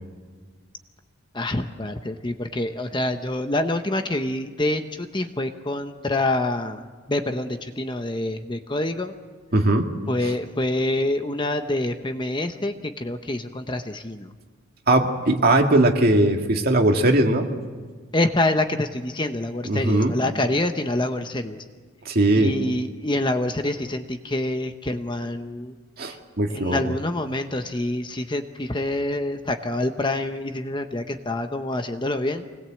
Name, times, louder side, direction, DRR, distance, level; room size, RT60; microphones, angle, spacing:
voice 1, 1.3-9.1 10.1-14.3 18.1-21.6 22.4-25.7 26.1-26.2 26.5-32.4, left 1 dB, 20° left, 7 dB, 0.9 m, -26 dB
voice 2, 9.5-9.9 10.2-10.3 14.9-17.5 19.7-20.1 22.1-22.5 26.0-26.8, right 1 dB, 45° right, 2 dB, 2.2 m, -19 dB
25.0 x 20.0 x 7.8 m, 1.5 s
head